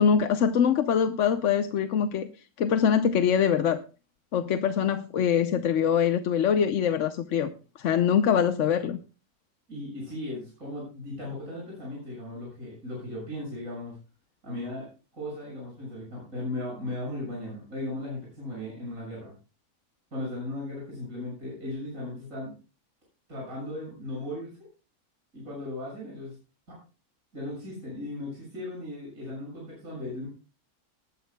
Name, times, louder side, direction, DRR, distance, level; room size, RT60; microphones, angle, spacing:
voice 1, 0.0-2.3 2.6-3.8 4.3-7.5 7.8-9.0, left 7 dB, 60° left, 9 dB, 1.0 m, -23 dB
voice 2, 9.7-14.0 14.4-14.9 15.1-19.3 20.1-22.5 23.3-24.5 25.3-26.4 26.7-26.8 27.3-30.3, left 1 dB, 65° right, -4 dB, 7.2 m, -37 dB
19.5 x 12.5 x 2.2 m, 0.33 s
omnidirectional pair, 1.6 m